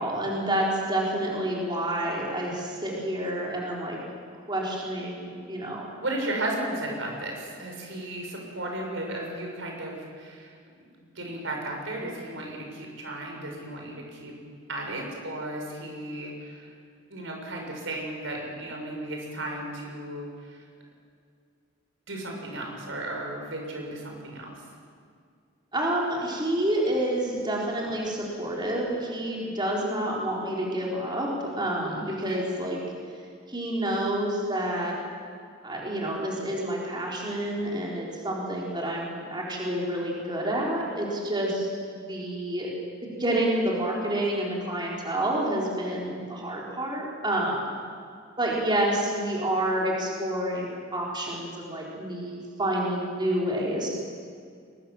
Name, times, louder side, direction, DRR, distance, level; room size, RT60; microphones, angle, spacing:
voice 1, 0.0-4.0 4.5-5.9 25.7-31.3 31.6-32.8 33.5-35.0 35.6-42.7 43.0-47.7 48.4-53.9, right 1 dB, 25° right, -3 dB, 4.3 m, -28 dB
voice 2, 6.0-10.5 11.0-14.3 14.7-16.7 17.1-20.6 22.1-24.6 32.1-32.5, right 1 dB, 75° right, 1 dB, 6.0 m, -35 dB
22.5 x 21.5 x 7.4 m, 2.1 s
head